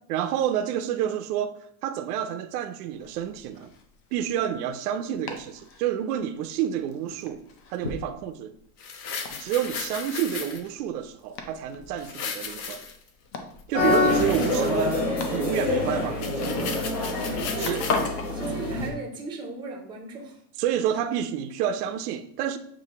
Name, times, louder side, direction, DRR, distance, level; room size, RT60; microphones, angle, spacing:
voice 1, 0.1-3.7 4.1-7.4 7.7-8.6 9.3-12.8 13.7-16.7 17.6-17.9 20.6-22.6, right 10 dB, 80° right, 0.6 m, -29 dB
Domestic sounds home sounds, 2.8-18.4, left 4 dB, 40° left, 0.7 m, -39 dB
sound 1, 8.8-10.7 12.0-13.1 13.6-15.0 15.3-15.4 15.8-15.9 16.1-18.1 18.6-18.7, left 6 dB, 85° left, 0.9 m, -36 dB
sound 2, 13.7-18.9, left 2 dB, 65° left, 1.7 m, -26 dB
voice 2, 17.4-20.4, right 3 dB, 10° right, 0.6 m, -37 dB
6.9 x 2.6 x 2.9 m
supercardioid pair, 160°, 45 cm